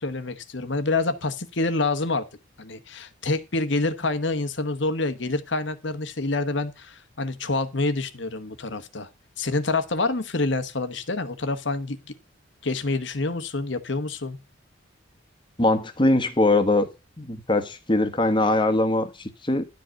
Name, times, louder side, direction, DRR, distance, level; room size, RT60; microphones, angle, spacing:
voice 1, 0.0-2.2 2.6-9.1 9.4-12.0 12.6-14.4, left 3 dB, 60° left, 1.2 m, -27 dB
voice 2, 15.6-16.9 17.2-19.7, left 2 dB, 25° left, 1.4 m, -22 dB
11.5 x 5.1 x 6.4 m
head